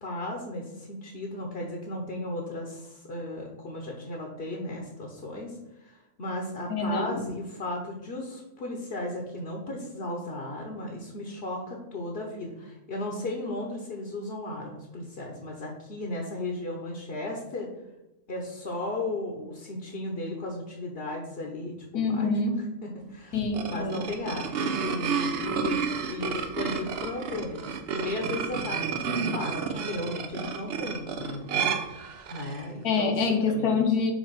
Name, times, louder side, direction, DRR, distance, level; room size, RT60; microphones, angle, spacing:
voice 1, 0.0-17.7 18.3-22.5 22.8-23.4 23.7-32.0 32.3-33.1 33.5-33.8, left 2 dB, 45° left, 0 dB, 1.1 m, -35 dB
voice 2, 6.7-7.2 21.9-22.6 23.3-24.0 32.8-34.1, left 4 dB, 75° left, 4 dB, 1.5 m, -26 dB
sound 1, 23.3-32.6, right 5 dB, 60° right, 0.6 m, -31 dB
5.2 x 4.2 x 5.7 m, 0.95 s
omnidirectional pair, 1.6 m